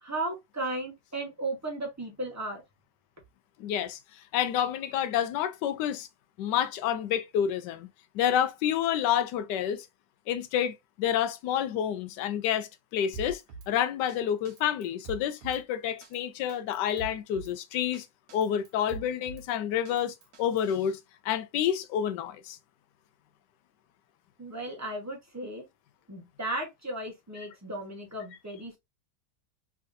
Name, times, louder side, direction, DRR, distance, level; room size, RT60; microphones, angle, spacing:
voice 1, 0.0-2.6 24.4-25.7 26.1-28.8, right 2 dB, 10° right, 0.8 m, -35 dB
voice 2, 3.6-4.0 4.3-6.1 6.4-7.9 8.1-9.9 10.3-18.1 18.3-21.0 21.2-22.6, left 9 dB, 75° left, 1.2 m, -29 dB
Drum kit, 13.1-13.7 14.1-14.2 14.5-15.6 16.0-16.2 16.5-17.5 17.9-18.0 18.3-19.5 19.9-20.8, right 3 dB, 60° right, 1.3 m, -43 dB
3.7 x 3.4 x 2.5 m
omnidirectional pair, 1.9 m